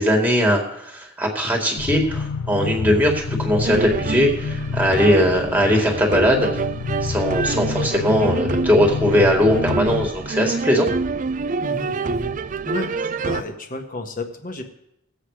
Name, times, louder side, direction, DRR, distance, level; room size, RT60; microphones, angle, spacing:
voice 1, 0.0-6.5 7.0-10.9, equal, 10° right, 1 dB, 2.1 m, -19 dB
low engine hum, 1.8-10.1, left 4 dB, 70° left, 0.6 m, -29 dB
sound 1, 3.6-13.4, right 4 dB, 40° right, 0.4 m, -26 dB
voice 2, 11.6-12.4 12.6-12.9 13.2-14.6, left 2 dB, 40° left, 5 dB, 1.5 m, -31 dB
19.5 x 7.9 x 4.9 m, 0.80 s
head